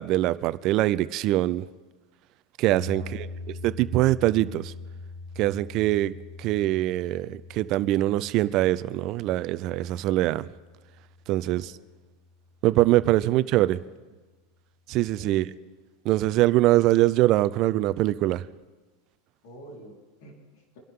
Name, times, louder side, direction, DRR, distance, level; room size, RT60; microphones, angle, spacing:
voice 1, 0.0-1.7 2.6-4.7 5.4-10.5 11.3-11.7 12.6-13.8 14.9-15.5 16.0-18.4, right 16 dB, 45° right, 0.6 m, -23 dB
sound 1, 2.6-12.9, left 3 dB, 90° right, 1.5 m, -43 dB
voice 2, 2.9-3.3 11.4-11.8 13.1-14.0 15.2-15.6 19.4-20.8, equal, 65° left, 4.5 m, -49 dB
26.5 x 11.5 x 3.8 m
supercardioid pair, 130°, 0 cm